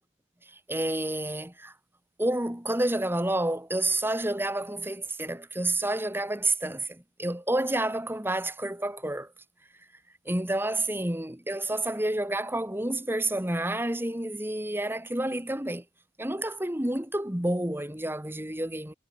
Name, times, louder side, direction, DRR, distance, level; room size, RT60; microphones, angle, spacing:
voice 1, 0.7-1.7 2.2-9.3 10.3-15.8 16.2-18.9, right 1 dB, 10° right, 1.9 m, -29 dB
head